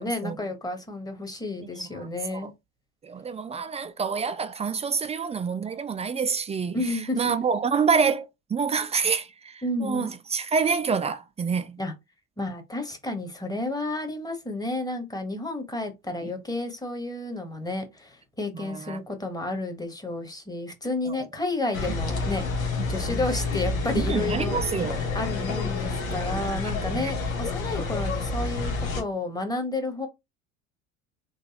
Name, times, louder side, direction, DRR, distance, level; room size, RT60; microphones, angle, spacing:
voice 1, 0.0-2.5 6.7-7.3 9.6-10.2 11.8-11.9 12.4-22.4 22.9-30.1, left 2 dB, 10° left, 1.2 m, -31 dB
voice 2, 3.0-6.8 7.2-9.5 9.8-11.8 18.6-19.0 23.9-25.0 26.9-27.1, right 5 dB, 15° right, 0.4 m, -27 dB
sound 1, 21.7-29.0, left 3 dB, 85° left, 1.1 m, -29 dB
4.0 x 3.1 x 2.9 m
hypercardioid pair, 70°, 40 cm